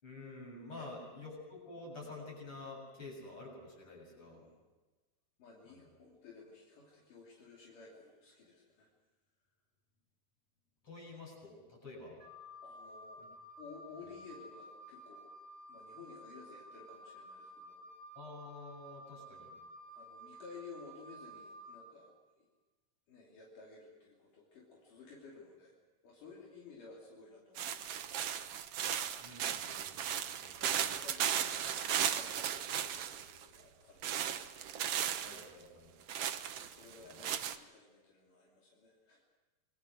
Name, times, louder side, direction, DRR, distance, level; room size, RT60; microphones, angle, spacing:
voice 1, 0.0-4.5 5.7-5.8 10.8-12.2 13.2-13.3 18.1-19.5 29.2-30.7 35.2-35.9 37.0-37.2, left 2 dB, 40° left, -1 dB, 8.3 m, -49 dB
voice 2, 4.2-4.6 5.4-8.9 12.6-13.2 13.6-15.3 15.7-17.8 19.9-22.5 23.1-25.8 26.0-28.2 30.6-34.3 36.6-39.2, left 4 dB, 70° left, -3 dB, 4.6 m, -55 dB
Wind instrument woodwind instrument, 12.2-21.8, equal, 20° left, 6.2 m, -53 dB
sound 1, 27.6-33.4 34.0-35.4 36.1-37.6, right 9 dB, 65° right, 1.6 m, -36 dB
28.5 x 21.0 x 6.3 m, 1.2 s
omnidirectional pair, 3.8 m